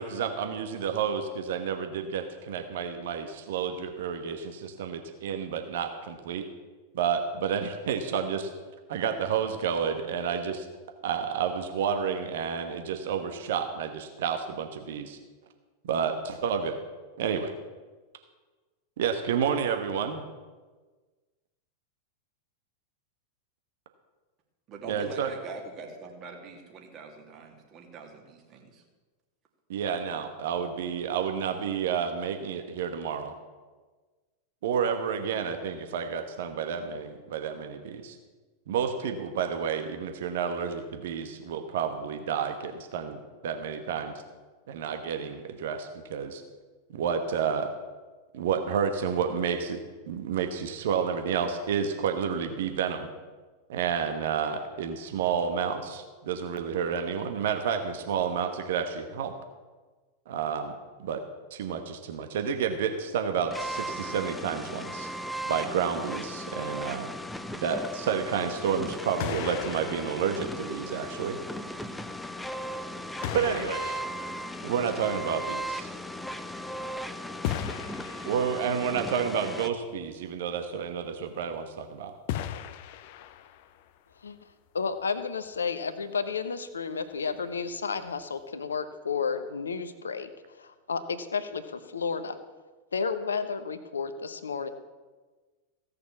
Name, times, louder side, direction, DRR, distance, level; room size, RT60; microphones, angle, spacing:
voice 1, 0.0-6.4 6.9-8.5 8.9-10.7 11.0-15.2 15.8-16.8 17.2-17.5 19.0-20.2 24.9-25.3 29.7-33.3 34.6-38.2 38.7-44.1 44.7-46.4 46.9-47.7 48.3-49.8 50.1-53.1 53.7-59.3 60.3-60.7 61.0-61.2 61.5-65.1 65.5-67.1 67.6-71.4 73.3-74.0 74.6-75.9 78.2-82.1, right 7 dB, 55° right, 6 dB, 1.2 m, -30 dB
voice 2, 24.7-28.8, right 4 dB, 35° right, 2 dB, 2.5 m, -43 dB
sound 1, 63.5-79.7, equal, 5° left, 0.7 m, -37 dB
sound 2, 68.7-68.9 69.2-71.3 72.3-72.4 73.2-75.4 77.4-79.1 82.3-83.9, left 11 dB, 50° left, 0.6 m, -37 dB
voice 3, 84.7-90.3 90.6-92.4 92.9-94.7, left 5 dB, 70° left, 11 dB, 0.9 m, -32 dB
16.5 x 6.8 x 7.1 m, 1.3 s
figure-of-eight pair, 90°, 0 cm